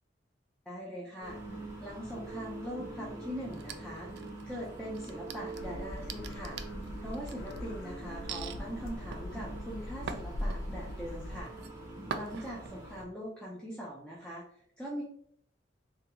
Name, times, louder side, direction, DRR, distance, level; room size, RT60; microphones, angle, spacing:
voice 1, 0.7-6.6 7.0-11.5 12.1-15.0, equal, 5° left, -5 dB, 0.5 m, -42 dB
sound 1, 1.2-13.0, right 2 dB, 15° right, 0.9 m, -44 dB
sound 2, 3.5-4.5 4.9-7.6 8.3-8.6 9.1-10.9 11.3-11.7 12.1-12.7, right 6 dB, 60° right, 0.3 m, -42 dB
sound 3, 5.5-11.4, left 1 dB, 85° left, 0.5 m, -41 dB
3.6 x 2.3 x 2.9 m, 0.65 s
head